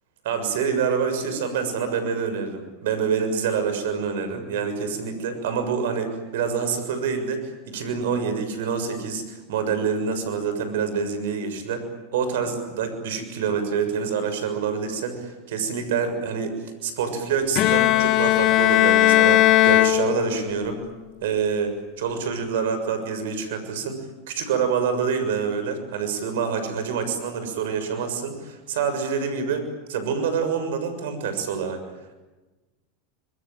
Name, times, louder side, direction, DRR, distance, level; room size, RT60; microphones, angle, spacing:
voice 1, 0.2-11.9 12.1-16.6 16.8-20.8 21.2-31.8, right 6 dB, 70° right, 9 dB, 6.8 m, -26 dB
Bowed string instrument, 17.6-20.7, left 15 dB, 50° left, 1.4 m, -18 dB
26.0 x 23.0 x 9.2 m, 1.1 s
hypercardioid pair, 95°, 0 cm